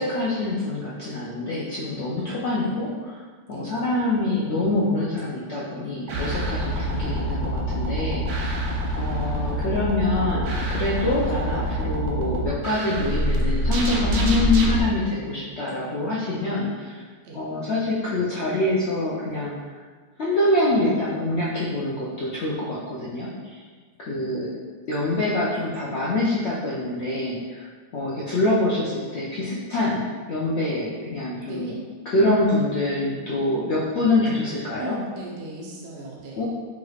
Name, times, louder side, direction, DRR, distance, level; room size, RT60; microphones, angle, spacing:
voice 1, 0.0-3.2 3.5-8.6 9.0-17.0 17.3-19.6 20.2-23.6 24.0-24.5 24.9-27.7 27.9-31.7 32.1-35.0 36.4-36.5, left 2 dB, 85° left, -6 dB, 0.6 m, -25 dB
sound 1, 6.1-14.8, equal, 70° right, 1.0 m, -25 dB
voice 2, 34.8-36.5, right 2 dB, 50° right, -3 dB, 0.8 m, -37 dB
4.9 x 3.1 x 2.4 m, 1.5 s
omnidirectional pair, 1.8 m